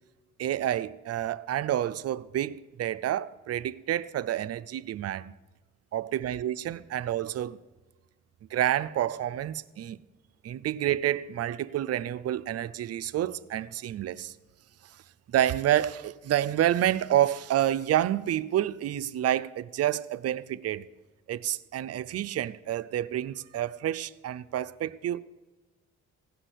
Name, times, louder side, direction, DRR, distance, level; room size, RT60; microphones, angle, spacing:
voice 1, 0.4-5.3 5.9-7.6 8.5-10.0 10.4-14.3 15.3-20.9 21.3-25.2, right 12 dB, 55° right, 0.5 m, -29 dB
16.5 x 6.0 x 8.2 m
cardioid pair, 90°, 30 cm